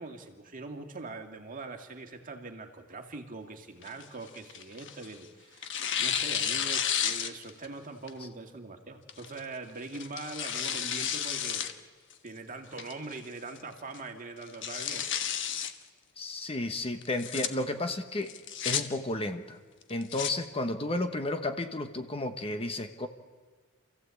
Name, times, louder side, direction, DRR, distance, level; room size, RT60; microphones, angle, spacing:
voice 1, 0.0-11.7 12.2-15.1, right 3 dB, 40° right, 4 dB, 2.1 m, -42 dB
Tearing, 3.8-5.2 5.6-7.7 8.1-8.2 9.1-9.4 9.9-11.7 12.1-12.2 12.8-13.2 13.6-13.7 13.9-14.0 14.4-15.7 17.0-17.5 18.3-18.8 19.8-20.3, left 8 dB, 60° left, 1.3 m, -32 dB
voice 2, 16.2-18.3 18.6-19.6 19.9-23.1, left 2 dB, 25° left, 7 dB, 1.2 m, -32 dB
28.5 x 15.0 x 8.4 m, 1.4 s
head